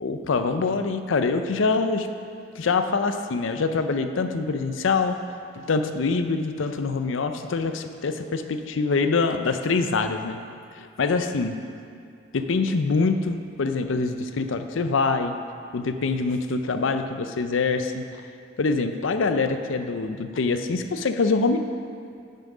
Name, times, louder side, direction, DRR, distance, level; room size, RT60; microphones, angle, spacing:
voice 1, 0.0-2.1 2.6-5.2 5.5-10.4 10.8-11.5 12.3-15.4 15.7-18.2 18.6-21.6, left 4 dB, 80° left, 8 dB, 0.5 m, -24 dB
9.2 x 5.7 x 4.9 m, 2.4 s
head